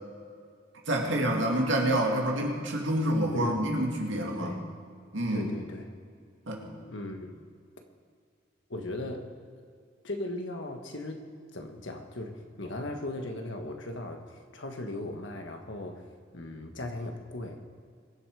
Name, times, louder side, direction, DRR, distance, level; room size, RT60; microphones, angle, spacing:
voice 1, 0.9-4.6 5.1-5.5 6.5-6.7, right 1 dB, 65° right, 0 dB, 2.3 m, -27 dB
voice 2, 3.3-3.6 4.4-4.7 5.3-5.9 6.8-7.3 8.7-9.3 10.0-16.0 16.3-17.6, left 1 dB, 65° left, 4 dB, 1.5 m, -38 dB
23.0 x 8.0 x 4.9 m, 2.2 s
head